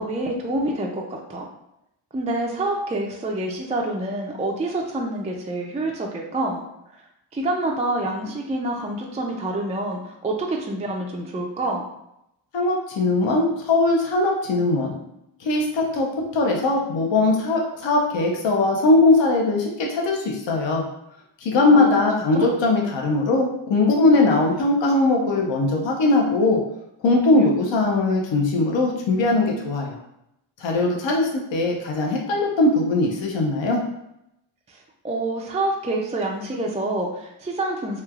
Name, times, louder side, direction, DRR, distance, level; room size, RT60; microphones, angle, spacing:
voice 1, 0.0-1.5 2.1-6.6 6.9-7.0 7.3-11.8 21.7-22.0 22.3-22.5 34.7-38.0, right 2 dB, 15° right, 0 dB, 0.3 m, -27 dB
voice 2, 12.5-14.9 15.4-16.1 16.3-20.8 21.4-26.6 27.0-30.0 30.6-33.8, left 2 dB, 65° left, 0 dB, 0.7 m, -20 dB
3.1 x 2.2 x 2.3 m, 0.81 s
cardioid pair, 60°, 48 cm